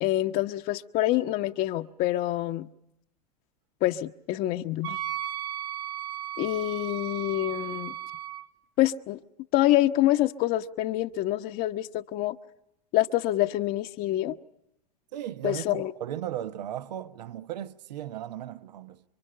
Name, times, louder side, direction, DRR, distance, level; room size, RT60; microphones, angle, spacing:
voice 1, 0.0-2.7 3.8-5.0 6.4-7.9 8.8-9.2 9.5-12.4 12.9-14.4 15.4-15.9, left 15 dB, 45° left, 1.1 m, -26 dB
Wind instrument woodwind instrument, 4.8-8.5, right 12 dB, 50° right, 1.2 m, -35 dB
voice 2, 15.1-19.0, right 11 dB, 80° right, 1.1 m, -36 dB
28.0 x 24.5 x 5.7 m
hypercardioid pair, 115°, 21 cm